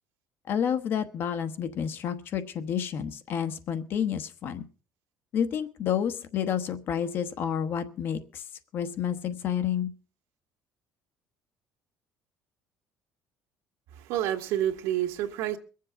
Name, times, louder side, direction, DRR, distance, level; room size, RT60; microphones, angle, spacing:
voice 1, 0.5-4.6 5.3-8.4 8.7-9.9, left 8 dB, 40° left, 1.1 m, -30 dB
voice 2, 13.9-15.6, right 12 dB, 80° right, 1.8 m, -29 dB
22.5 x 7.6 x 5.7 m
cardioid pair, 165°, 6 cm